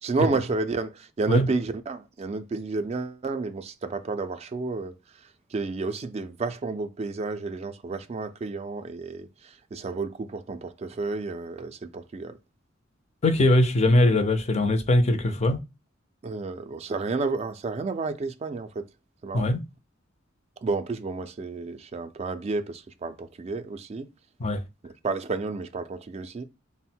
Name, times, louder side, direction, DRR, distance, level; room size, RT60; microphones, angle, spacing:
voice 1, 0.0-12.4 16.2-18.9 19.2-19.5 20.6-24.1 24.8-26.5, right 3 dB, 30° right, 0.3 m, -31 dB
voice 2, 13.2-15.6 19.3-19.6 24.4-24.6, left 1 dB, 35° left, 0.4 m, -21 dB
3.7 x 2.0 x 4.3 m
head